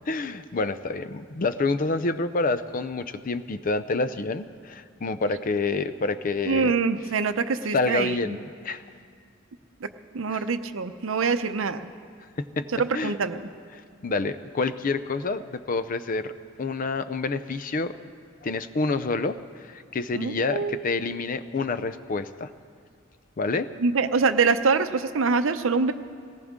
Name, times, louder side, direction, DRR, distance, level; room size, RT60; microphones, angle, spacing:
voice 1, 0.1-6.7 7.7-8.8 10.3-10.4 12.4-12.7 12.9-13.1 13.7-16.3 16.6-17.9 18.4-19.4 19.6-22.5 23.4-23.7, left 3 dB, 40° left, 12 dB, 0.5 m, -28 dB
voice 2, 6.5-8.4 9.8-11.9 12.8-13.4 20.1-20.8 23.8-25.9, right 4 dB, 80° right, 10 dB, 0.6 m, -25 dB
18.5 x 18.0 x 3.6 m, 2.2 s
head